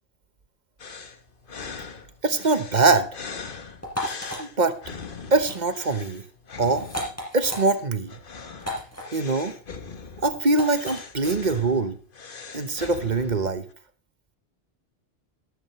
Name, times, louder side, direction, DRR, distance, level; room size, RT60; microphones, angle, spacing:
sound 1, 0.8-13.7, left 5 dB, 50° left, 1.3 m, -41 dB
voice 1, 2.2-3.1 4.4-4.8 5.3-6.2 6.6-6.9 7.3-8.1 9.1-9.5 10.2-12.0 12.5-13.6, right 3 dB, 45° right, 11 dB, 1.2 m, -23 dB
sound 2, 3.8-4.4 5.3-5.6 5.9-6.1 6.8-7.6 8.6-9.0 10.5-11.0, left 1 dB, 15° left, 4.9 m, -33 dB
13.0 x 12.5 x 3.2 m, 0.40 s
omnidirectional pair, 1.1 m